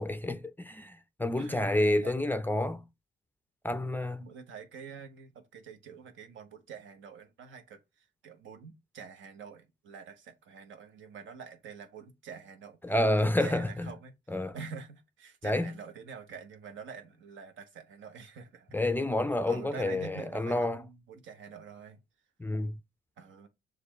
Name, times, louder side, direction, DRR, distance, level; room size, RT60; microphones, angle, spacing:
voice 1, 0.0-2.8 3.6-4.3 12.8-13.9 14.3-14.5 15.4-15.7 18.7-20.8 22.4-22.8, left 1 dB, 10° left, 0.4 m, -29 dB
voice 2, 1.4-1.7 2.0-2.1 4.2-12.8 13.2-14.1 14.5-18.8 19.5-22.0 23.2-23.5, right 6 dB, 75° right, 1.0 m, -46 dB
6.7 x 2.4 x 3.1 m
cardioid pair, 90°, 20 cm